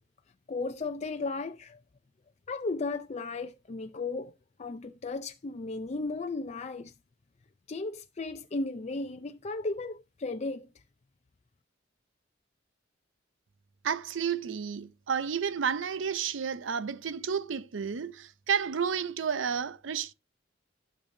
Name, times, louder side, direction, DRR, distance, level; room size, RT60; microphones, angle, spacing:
voice 1, 0.5-1.8 2.5-4.3 4.6-6.9 7.7-10.7, left 3 dB, 35° left, 0.5 m, -35 dB
voice 2, 13.8-20.1, right 7 dB, 70° right, 0.6 m, -31 dB
11.5 x 6.7 x 2.6 m
head